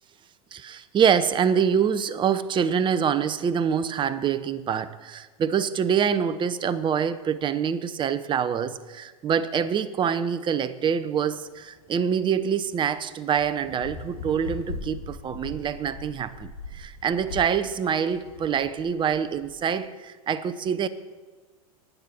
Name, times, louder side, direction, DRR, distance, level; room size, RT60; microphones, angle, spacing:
voice 1, 0.5-20.9, right 7 dB, 25° right, 14 dB, 0.9 m, -25 dB
sound 1, 11.3-19.5, left 3 dB, 85° left, 3.4 m, -40 dB
21.0 x 9.4 x 4.4 m, 1.3 s
hypercardioid pair, 95°, 19 cm